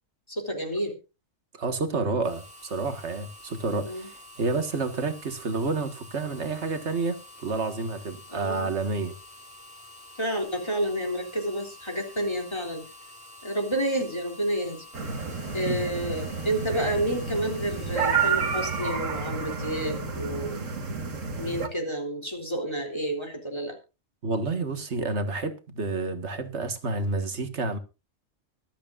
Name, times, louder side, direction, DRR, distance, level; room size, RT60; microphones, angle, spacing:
voice 1, 0.3-1.0 3.8-4.1 8.3-8.7 10.2-12.8 13.4-14.9 15.5-20.7 21.4-23.8, right 1 dB, 20° left, 3.5 m, -30 dB
voice 2, 1.5-9.1 15.7-15.8 24.2-27.8, right 3 dB, 60° right, 2.0 m, -29 dB
sound 1, 2.2-18.9, left 2 dB, 5° right, 5.5 m, -48 dB
sound 2, 14.9-21.7, right 5 dB, 85° right, 2.2 m, -30 dB
24.0 x 8.6 x 2.5 m
omnidirectional pair, 1.3 m